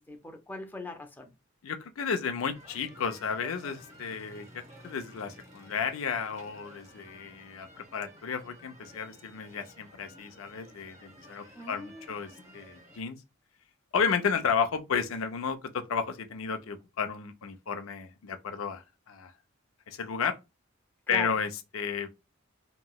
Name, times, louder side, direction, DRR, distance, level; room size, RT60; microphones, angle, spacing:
voice 1, 0.0-1.3 11.5-12.1 21.1-21.3, left 2 dB, 10° left, 0.5 m, -41 dB
voice 2, 1.6-13.2 13.9-19.3 19.9-20.4 21.1-22.2, left 6 dB, 80° left, 0.5 m, -33 dB
sound 1, 2.5-13.0, equal, 35° right, 0.8 m, -53 dB
3.0 x 2.8 x 2.2 m
head